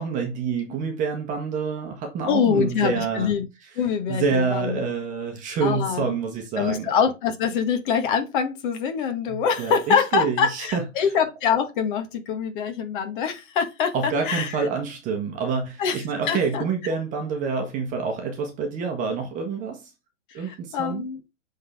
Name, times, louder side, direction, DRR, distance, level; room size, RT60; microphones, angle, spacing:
voice 1, 0.0-3.3 4.1-6.9 9.3-10.8 13.9-19.9 20.3-21.1, right 5 dB, 20° right, 1.3 m, -27 dB
voice 2, 2.3-3.4 3.8-4.8 5.6-6.1 6.6-14.5 15.8-16.0 16.3-16.6 20.5-21.2, left 7 dB, 40° left, 1.7 m, -24 dB
7.3 x 3.9 x 3.6 m
hypercardioid pair, 145°, 39 cm